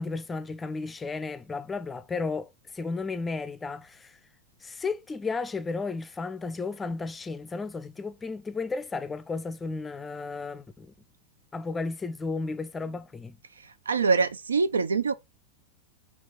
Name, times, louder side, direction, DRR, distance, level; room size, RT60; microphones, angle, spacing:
voice 1, 0.0-4.2 4.6-10.9 11.5-13.4, left 4 dB, 15° left, 0.5 m, -33 dB
voice 2, 13.9-15.1, right 4 dB, 75° right, 0.3 m, -24 dB
4.5 x 2.9 x 4.0 m
figure-of-eight pair, 90°, 0 cm